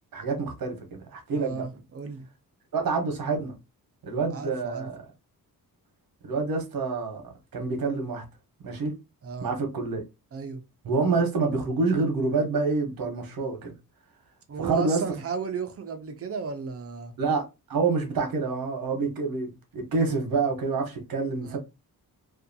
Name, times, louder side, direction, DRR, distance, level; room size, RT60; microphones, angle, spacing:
voice 1, 0.1-1.6 2.7-3.5 4.0-5.0 6.2-8.2 8.6-9.0 9.4-10.0 10.8-13.7 14.6-15.0 17.2-21.6, right 4 dB, 70° right, 0.9 m, -27 dB
voice 2, 1.3-2.3 4.3-4.9 9.2-9.6 10.3-10.6 14.5-17.1 21.5-21.6, right 6 dB, 40° right, 0.4 m, -34 dB
2.6 x 2.2 x 2.6 m
wide cardioid pair, 170°, 36 cm